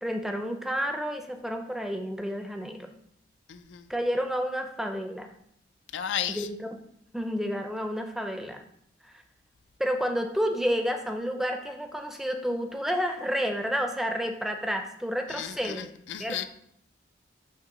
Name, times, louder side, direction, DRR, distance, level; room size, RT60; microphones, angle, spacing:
voice 1, 0.0-2.9 3.9-5.3 6.3-6.8 7.1-8.6 9.8-15.9 16.2-16.5, equal, ahead, 5 dB, 0.4 m, -30 dB
voice 2, 3.5-3.9 5.9-6.5 15.3-16.5, left 9 dB, 85° left, 10 dB, 0.4 m, -34 dB
6.6 x 2.9 x 4.9 m, 0.71 s
head